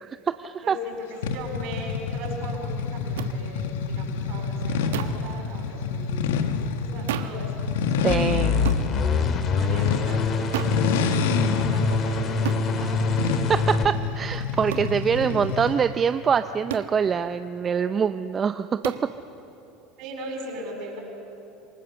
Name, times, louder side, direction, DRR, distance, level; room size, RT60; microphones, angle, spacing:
voice 1, 0.0-0.8 8.0-8.6 12.8-12.9 13.8-18.9, right 6 dB, 35° right, 11 dB, 0.6 m, -24 dB
voice 2, 0.6-7.6 9.1-13.5 15.3-15.4 20.0-21.0, right 1 dB, 60° right, 0 dB, 7.3 m, -38 dB
sound 1, 1.2-15.9, left 5 dB, 80° left, 1.3 m, -28 dB
sound 2, 3.2-3.3 4.9-5.3 7.1-7.4 8.6-8.9 10.5-10.8 12.4-12.7 14.7-14.9 16.7-17.0 18.8-19.1, right 12 dB, 80° right, 1.2 m, -31 dB
sound 3, 8.1-13.9, left 4 dB, 45° left, 2.1 m, -25 dB
27.0 x 19.5 x 7.0 m, 3.0 s
hypercardioid pair, 80°, 0 cm